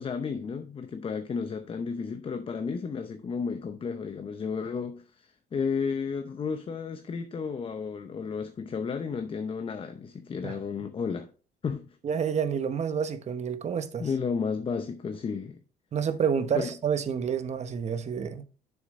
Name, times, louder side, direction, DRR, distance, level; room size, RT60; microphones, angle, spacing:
voice 1, 0.0-11.3 11.6-12.0 14.0-15.6 16.5-16.7, left 5 dB, 30° left, 0.7 m, -33 dB
voice 2, 12.0-14.1 15.9-18.4, right 7 dB, 40° right, 1.0 m, -29 dB
6.8 x 6.5 x 3.6 m
cardioid pair, 110°, 17 cm